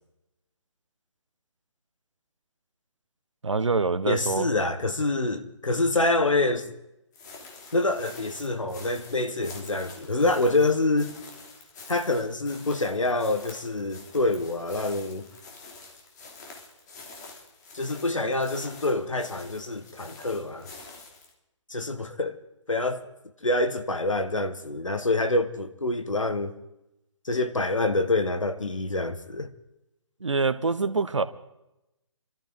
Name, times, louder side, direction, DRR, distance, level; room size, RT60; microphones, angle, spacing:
voice 1, 3.4-4.5 30.2-31.2, right 4 dB, 70° right, 1.2 m, -25 dB
voice 2, 4.1-6.7 7.7-11.1 11.9-15.3 17.7-20.7 21.7-22.4 22.7-23.1 23.4-26.6 27.2-29.5, left 2 dB, 80° left, 1.6 m, -26 dB
sound 1, 7.1-21.3, left 3 dB, 35° left, 3.1 m, -47 dB
27.0 x 13.5 x 3.9 m
figure-of-eight pair, 140°, 16 cm